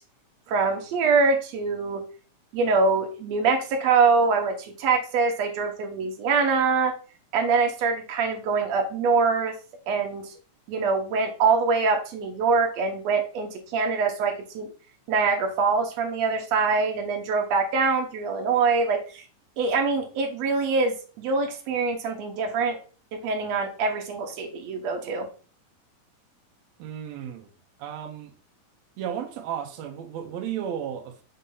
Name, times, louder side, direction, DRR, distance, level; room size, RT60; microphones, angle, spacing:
voice 1, 0.5-2.0 2.5-6.9 7.3-9.5 9.9-10.2 10.7-14.7 15.1-19.2 19.6-22.8 23.2-25.3, right 4 dB, 65° right, 1.9 m, -24 dB
voice 2, 26.8-27.5 27.8-28.3 29.0-31.2, right 9 dB, 85° right, 1.5 m, -34 dB
6.5 x 2.8 x 5.4 m
omnidirectional pair, 4.0 m